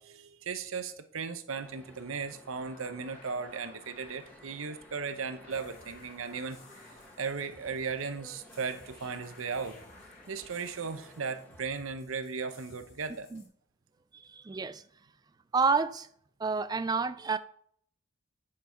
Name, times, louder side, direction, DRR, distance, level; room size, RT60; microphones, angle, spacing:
voice 1, 0.0-6.6 7.2-9.8 10.3-13.3, right 5 dB, 75° right, 0.8 m, -36 dB
sound 1, 1.5-11.6, left 1 dB, 10° left, 1.0 m, -56 dB
sound 2, 2.1-11.5, left 3 dB, 45° left, 1.7 m, -57 dB
sound 3, 5.5-13.5, left 2 dB, 60° left, 1.9 m, -60 dB
voice 2, 14.1-14.8 15.5-16.1 16.4-17.4, right 4 dB, 20° right, 0.3 m, -29 dB
8.7 x 5.4 x 4.4 m
head